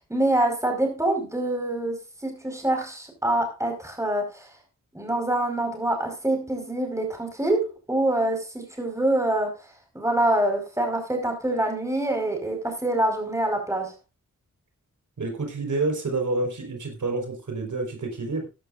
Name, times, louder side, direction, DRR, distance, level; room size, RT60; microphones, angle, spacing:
voice 1, 0.1-4.5 4.9-9.6 9.9-13.9, right 1 dB, 10° right, 3 dB, 5.0 m, -25 dB
voice 2, 15.2-18.5, right 3 dB, 70° right, 3 dB, 4.6 m, -28 dB
15.0 x 11.5 x 2.6 m, 0.28 s
wide cardioid pair, 80°, 31 cm